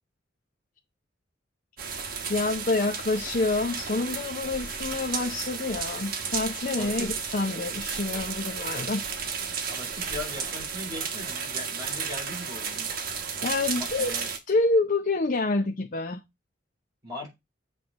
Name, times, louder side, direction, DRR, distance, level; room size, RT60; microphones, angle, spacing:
sound 1, 1.8-14.4, right 6 dB, 55° right, 1.1 m, -33 dB
voice 1, 2.3-9.0 13.2-14.1 14.5-16.2, left 2 dB, 45° left, 0.6 m, -27 dB
voice 2, 6.8-7.1 9.7-12.9 13.7-14.3 17.0-17.3, left 1 dB, 20° right, 5.1 m, -39 dB
7.7 x 3.4 x 5.2 m
head